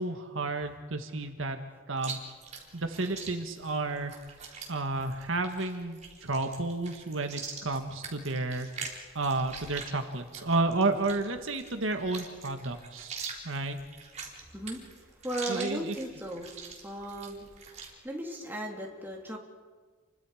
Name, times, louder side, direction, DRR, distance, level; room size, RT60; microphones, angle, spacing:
voice 1, 0.0-1.6 1.9-2.2 2.7-4.1 4.7-8.7 9.1-13.1 13.4-13.8 15.5-16.0, right 2 dB, 75° right, 6 dB, 1.7 m, -31 dB
Chewing mastication, 2.0-17.9, right 5 dB, 35° right, 3.9 m, -44 dB
voice 2, 14.5-14.9 15.2-17.5 18.0-19.4, right 1 dB, 10° right, -1 dB, 3.2 m, -36 dB
30.0 x 24.0 x 5.1 m, 1.4 s
head